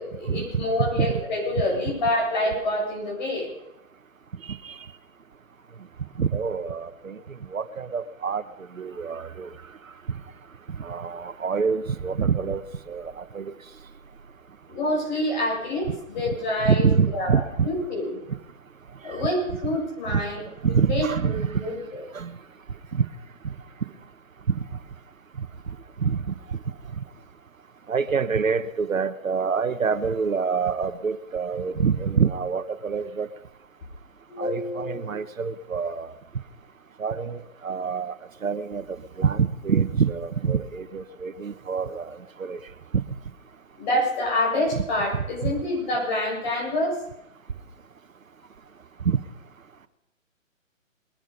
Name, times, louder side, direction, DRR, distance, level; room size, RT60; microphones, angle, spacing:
voice 1, 0.2-3.5 14.7-16.9 17.1-18.2 19.0-20.4 20.7-21.8 34.3-35.1 43.8-47.0, left 1 dB, 35° left, -2 dB, 6.9 m, -27 dB
voice 2, 0.8-1.2 4.6-4.7 6.2-7.2 7.5-8.4 8.8-9.5 10.8-12.6 12.9-13.5 16.6-17.7 20.1-20.2 20.6-21.6 22.1-22.3 22.9-23.0 24.5-24.6 26.0-26.3 27.9-33.3 34.4-36.1 37.0-38.1 38.4-38.8 39.2-42.1 42.4-42.6 42.9-43.0 45.1-45.5, right 6 dB, 80° right, 13 dB, 1.2 m, -26 dB
22.0 x 10.0 x 5.4 m, 0.87 s
figure-of-eight pair, 150°, 40 cm